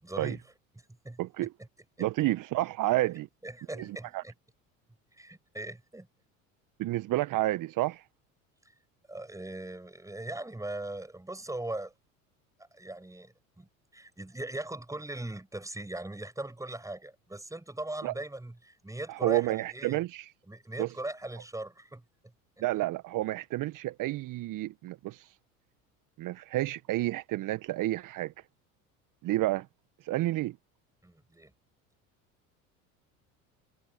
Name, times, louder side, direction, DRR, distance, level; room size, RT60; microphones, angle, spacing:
voice 1, 0.0-0.4 1.0-1.2 2.0-2.1 3.4-4.3 5.2-6.1 9.1-11.9 12.6-20.0 20.5-22.0 22.6-22.7 31.0-31.5, right 2 dB, 10° right, 6.3 m, -40 dB
voice 2, 1.2-1.5 2.0-3.3 4.1-4.2 6.8-8.0 18.0-18.1 19.1-20.3 20.8-20.9 22.6-25.3 26.2-28.3 29.2-29.7 30.0-30.6, right 17 dB, 50° right, 1.4 m, -30 dB
hypercardioid pair, 70°, 41 cm